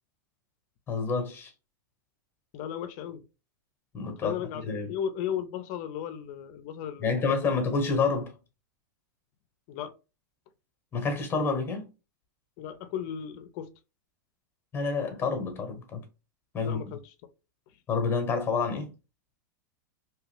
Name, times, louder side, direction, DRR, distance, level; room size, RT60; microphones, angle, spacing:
voice 1, 0.9-1.5 3.9-4.4 4.7-4.9 7.0-8.3 10.9-11.9 14.7-16.0 16.5-16.8 17.9-18.9, left 4 dB, 20° left, 1.0 m, -28 dB
voice 2, 2.5-3.2 4.2-7.5 9.7-9.9 12.6-13.7 16.6-17.0, left 9 dB, 50° left, 0.5 m, -35 dB
2.8 x 2.4 x 3.3 m
hypercardioid pair, 125°, 11 cm